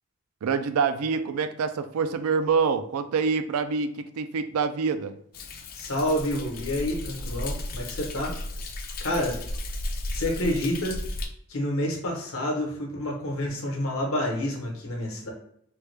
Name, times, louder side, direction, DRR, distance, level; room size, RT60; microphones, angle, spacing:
voice 1, 0.4-5.1, right 5 dB, 90° right, 10 dB, 0.3 m, -26 dB
Thunder, 5.3-11.3, left 1 dB, 40° left, 0.4 m, -34 dB
voice 2, 5.7-8.3 9.0-9.4 10.1-11.0 11.5-15.3, left 1 dB, 70° left, 0 dB, 1.0 m, -28 dB
3.3 x 2.2 x 3.2 m, 0.70 s
head